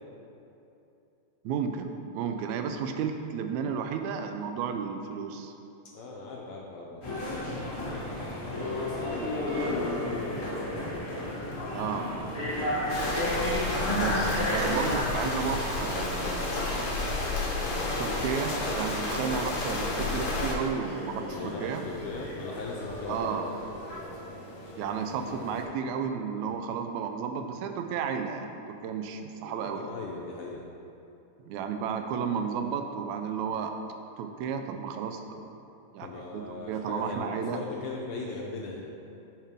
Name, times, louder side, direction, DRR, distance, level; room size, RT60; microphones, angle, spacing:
voice 1, 1.4-5.5 11.7-12.1 13.9-16.6 18.0-21.9 23.1-23.5 24.8-29.9 31.5-33.7 34.2-35.4 35.9-37.6, right 6 dB, 85° right, 6 dB, 1.9 m, -33 dB
voice 2, 5.9-7.0 8.8-10.5 21.2-23.3 29.4-30.6 36.0-38.9, left 3 dB, 90° left, -2 dB, 1.2 m, -39 dB
sound 1, 7.0-15.0, left 1 dB, 25° left, 1.4 m, -31 dB
sound 2, 9.0-25.6, left 1 dB, 50° left, 1.4 m, -42 dB
sound 3, 12.9-20.5, left 2 dB, 70° left, 0.9 m, -31 dB
9.2 x 5.7 x 3.5 m, 2.8 s
omnidirectional pair, 3.3 m